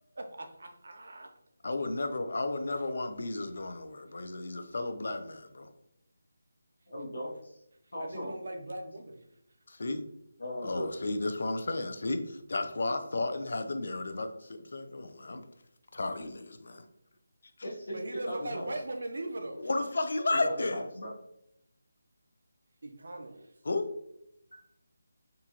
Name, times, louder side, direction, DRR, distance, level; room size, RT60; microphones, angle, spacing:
voice 1, 0.2-1.3 8.0-9.2 17.9-19.7 22.8-23.5, right 1 dB, 55° right, 4 dB, 0.6 m, -39 dB
voice 2, 1.6-5.7 9.7-10.0 10.6-15.4 15.9-16.8 19.6-20.8 23.7-23.9, left 2 dB, 55° left, 8 dB, 0.4 m, -33 dB
voice 3, 6.9-7.6 7.9-8.3 10.4-10.9 14.4-14.5 17.6-18.7 20.0-20.1 20.4-21.1 24.5-24.6, equal, 70° left, -2 dB, 0.9 m, -38 dB
3.7 x 2.3 x 2.9 m, 0.81 s
figure-of-eight pair, 175°, 0 cm